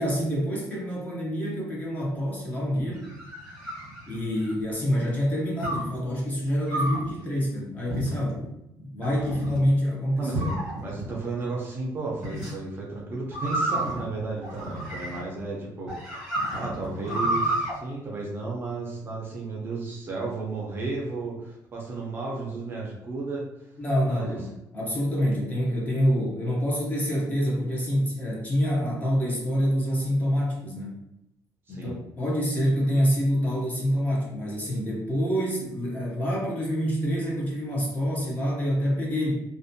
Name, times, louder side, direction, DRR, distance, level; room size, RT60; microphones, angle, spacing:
voice 1, 0.0-3.0 4.1-8.5 8.8-10.5 23.8-31.0 31.7-39.5, equal, 20° left, -4 dB, 0.6 m, -26 dB
sound 1, 2.8-4.6 5.6-6.0 6.7-7.1 7.9-8.4 9.0-9.6 10.3-11.1 12.2-12.5 13.3-15.4 15.9-17.7, right 1 dB, 5° right, 0.9 m, -30 dB
voice 2, 10.2-23.4 24.0-24.4 31.7-31.9, right 3 dB, 30° right, -3 dB, 0.5 m, -33 dB
2.5 x 2.1 x 2.6 m, 0.84 s
cardioid pair, 175°, 8 cm